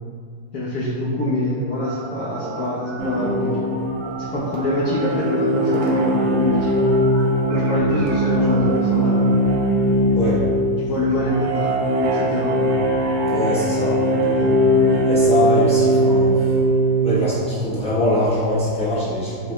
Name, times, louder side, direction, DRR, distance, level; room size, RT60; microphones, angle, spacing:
voice 1, 0.5-3.6 4.2-6.7 7.5-9.1 10.8-12.5, left 1 dB, 70° left, -9 dB, 0.9 m, -24 dB
sound 1, 1.8-9.4, right 2 dB, 85° right, 1.5 m, -34 dB
sound 2, 3.0-17.1, equal, 70° right, 1.3 m, -20 dB
voice 2, 10.1-10.5 13.3-14.6 15.0-16.5 17.0-19.5, left 1 dB, 10° left, -12 dB, 0.3 m, -23 dB
5.6 x 2.1 x 3.0 m, 2.1 s
omnidirectional pair, 2.3 m